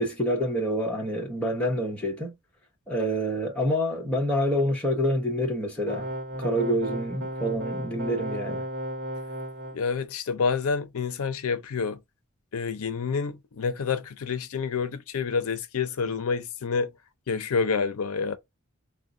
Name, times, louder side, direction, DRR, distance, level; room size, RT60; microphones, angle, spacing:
voice 1, 0.0-2.3 2.9-6.1 6.4-8.7, equal, 5° left, 0.9 m, -27 dB
sound 1, 5.9-9.8, equal, 50° right, 0.7 m, -34 dB
voice 2, 9.7-12.0 12.5-16.9 17.3-18.4, left 5 dB, 75° left, 0.5 m, -28 dB
3.7 x 2.1 x 3.7 m
head